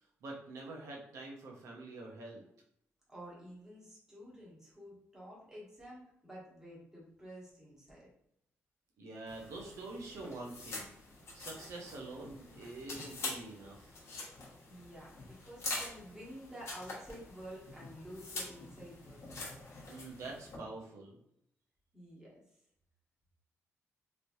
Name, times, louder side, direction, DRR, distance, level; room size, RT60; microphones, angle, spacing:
voice 1, 0.2-2.4 9.0-10.9 11.3-14.0 19.9-21.2, right 2 dB, 80° right, -1 dB, 0.7 m, -46 dB
voice 2, 3.1-8.1 14.4-19.2 21.9-22.4, equal, 10° right, -6 dB, 1.3 m, -50 dB
sound 1, 9.3-20.6, left 2 dB, 65° left, 1.1 m, -45 dB
3.1 x 2.9 x 2.6 m, 0.74 s
wide cardioid pair, 140°, 5 cm